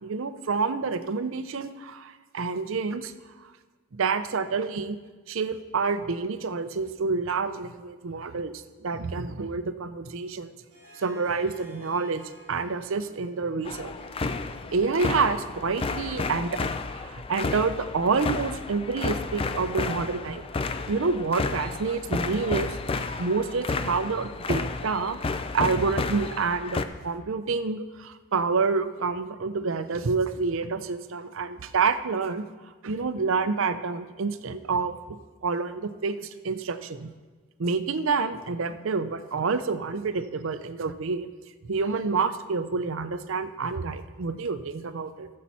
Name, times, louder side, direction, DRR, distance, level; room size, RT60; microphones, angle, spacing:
voice 1, 0.0-3.1 3.9-5.0 5.3-10.5 11.0-12.2 12.5-13.9 14.7-20.4 20.9-25.2 25.5-32.5 32.8-37.1 37.6-41.3 41.6-45.3, right 4 dB, 65° right, 11 dB, 0.5 m, -28 dB
Harp, 10.7-16.2, right 1 dB, 30° right, 4.0 m, -52 dB
sound 1, 13.7-26.8, left 3 dB, 25° left, 0.3 m, -31 dB
14.5 x 7.4 x 4.2 m, 1.4 s
head